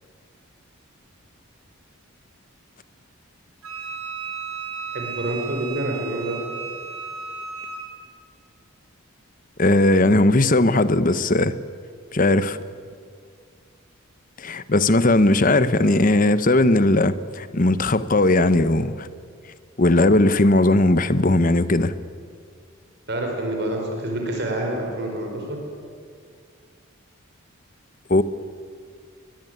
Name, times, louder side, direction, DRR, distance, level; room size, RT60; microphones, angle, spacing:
Wind instrument woodwind instrument, 3.6-7.9, right 5 dB, 85° right, 5.4 m, -34 dB
voice 1, 4.9-6.4 23.1-25.6, right 1 dB, 50° right, 1 dB, 5.2 m, -27 dB
voice 2, 9.6-11.5 12.1-12.6 14.4-19.1 19.8-21.9 28.1-28.2, left 2 dB, 40° left, 14 dB, 1.0 m, -18 dB
22.0 x 22.0 x 9.4 m, 2.2 s
head